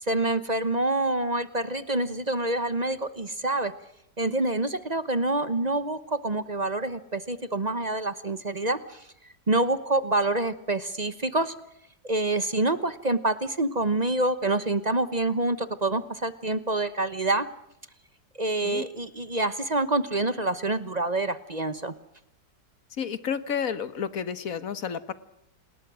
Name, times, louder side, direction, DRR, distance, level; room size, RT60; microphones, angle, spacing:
voice 1, 0.0-3.7 4.2-9.1 9.5-11.5 12.0-17.5 18.3-21.9, right 2 dB, 30° right, 13 dB, 1.0 m, -27 dB
voice 2, 23.0-25.1, left 7 dB, 50° left, 14 dB, 1.7 m, -31 dB
28.5 x 20.5 x 6.3 m, 0.79 s
omnidirectional pair, 1.9 m